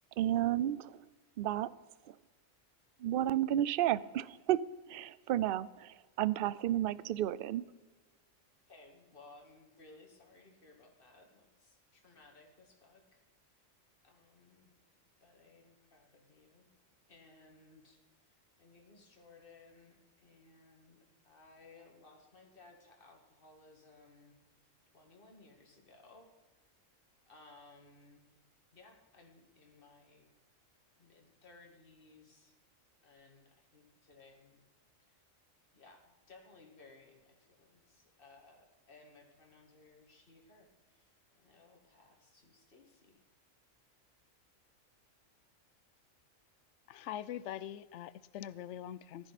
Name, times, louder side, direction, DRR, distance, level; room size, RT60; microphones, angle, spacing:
voice 1, 0.2-1.0 1.4-1.7 2.1-2.2 3.0-4.6 4.9-7.7, right 12 dB, 65° right, 0.5 m, -32 dB
voice 2, 8.7-13.2 14.0-14.8 15.2-16.7 17.1-24.3 24.9-26.3 27.3-28.3 28.7-30.3 31.0-32.6 33.0-34.6 35.1-35.2 35.7-43.2, left 3 dB, 45° left, 2.2 m, -60 dB
voice 3, 46.9-49.3, left 11 dB, 70° left, 0.8 m, -43 dB
15.5 x 13.5 x 4.2 m
omnidirectional pair, 1.4 m